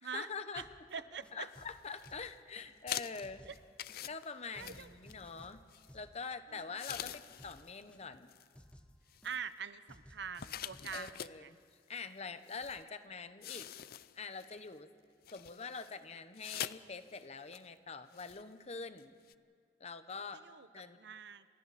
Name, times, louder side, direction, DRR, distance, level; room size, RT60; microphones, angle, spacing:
voice 1, 0.0-0.7 1.3-3.4 4.1-5.6 5.9-8.3 10.9-11.6 11.9-13.7 14.1-14.9 15.3-19.1 19.8-20.4 20.7-21.0, left 4 dB, 40° left, 10 dB, 1.0 m, -45 dB
voice 2, 0.5-1.5 3.4-3.6 4.5-4.9 6.5-6.6 9.2-11.5 20.3-20.7 21.0-21.5, right 6 dB, 65° right, 14 dB, 0.7 m, -44 dB
sound 1, 0.6-0.9 1.2-2.9 3.2-4.3 4.5-6.3 6.6-8.3 8.5-9.6 9.9-11.1, equal, 5° left, 1.0 m, -59 dB
sound 2, 1.4-2.3 2.9-5.4 5.7-5.9 6.8-7.8 8.1-8.5 9.1-9.5 10.3-11.4 12.0-12.1 12.5-12.8 13.4-14.6 15.2-15.9 16.3-16.8 17.1-17.2 17.5-17.7 18.1-18.4 19.0-19.1 19.3-19.4, left 11 dB, 55° left, 0.5 m, -45 dB
28.5 x 27.0 x 4.2 m, 2.2 s
head